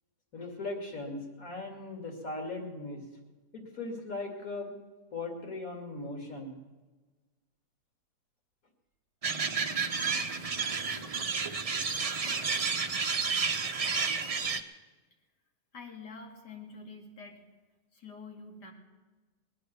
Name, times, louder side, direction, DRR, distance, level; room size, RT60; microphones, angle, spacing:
voice 1, 0.3-3.0 3.5-4.7 5.1-6.6, left 2 dB, 55° left, 2 dB, 2.9 m, -38 dB
sound 1, 9.2-14.6, right 5 dB, 45° right, 0.4 m, -31 dB
voice 2, 15.7-17.4 17.9-18.7, left 4 dB, 85° left, 2 dB, 2.8 m, -46 dB
21.0 x 9.5 x 6.8 m, 1.3 s
omnidirectional pair, 1.7 m